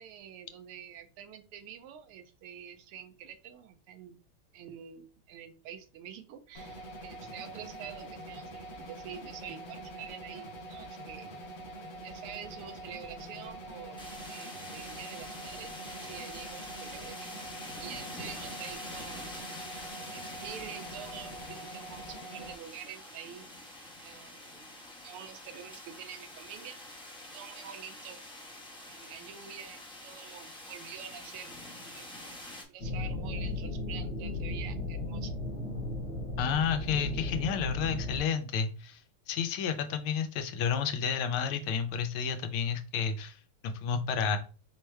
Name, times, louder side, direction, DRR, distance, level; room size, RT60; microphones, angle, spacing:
voice 1, 0.0-4.2 4.5-11.3 12.0-14.0 14.3-17.3 17.8-19.4 20.1-23.5 24.0-24.7 25.0-26.8 27.3-28.2 28.8-32.1 32.7-35.4, right 9 dB, 85° right, 8 dB, 1.5 m, -47 dB
sound 1, 6.5-22.5, right 1 dB, 60° left, 0.6 m, -45 dB
sound 2, 14.0-32.6, left 1 dB, 5° left, 0.6 m, -46 dB
sound 3, 32.8-38.2, left 2 dB, 40° left, 1.0 m, -35 dB
voice 2, 36.4-39.0 39.3-44.4, left 6 dB, 80° left, 8 dB, 1.5 m, -31 dB
4.8 x 2.1 x 4.5 m, 0.36 s
omnidirectional pair, 2.4 m